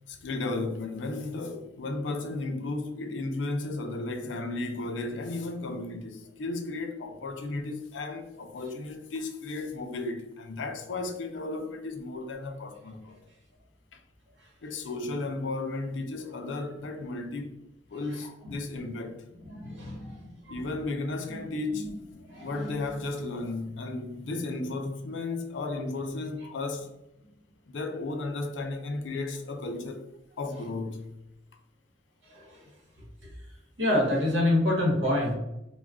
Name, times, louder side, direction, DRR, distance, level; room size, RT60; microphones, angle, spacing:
voice 1, 0.1-13.2 13.9-14.0 14.6-17.6 17.9-19.2 20.5-21.9 22.4-26.9 27.7-30.0 30.4-31.2, left 2 dB, 80° left, 0.4 m, -34 dB
voice 2, 19.5-20.2 21.3-21.4 21.8-21.9 22.2-22.7 32.3-32.6 33.8-35.3, left 1 dB, 80° right, 1.0 m, -26 dB
2.2 x 2.1 x 3.5 m
head